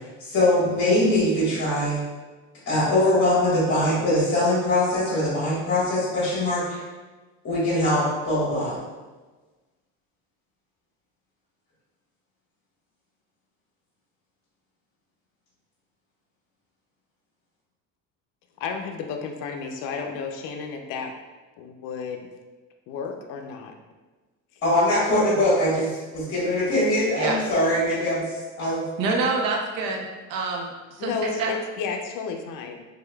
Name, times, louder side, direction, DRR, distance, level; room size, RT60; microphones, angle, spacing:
voice 1, 0.0-2.0 2.7-6.8 7.4-8.7 24.6-28.8, left 1 dB, 35° left, -10 dB, 1.4 m, -22 dB
voice 2, 18.6-21.1 21.6-22.3 22.9-23.7 31.0-32.8, left 5 dB, 70° left, 3 dB, 0.5 m, -32 dB
voice 3, 29.0-31.5, right 3 dB, 70° right, 1 dB, 0.7 m, -27 dB
3.5 x 3.3 x 2.2 m, 1.3 s
cardioid pair, 140°, 34 cm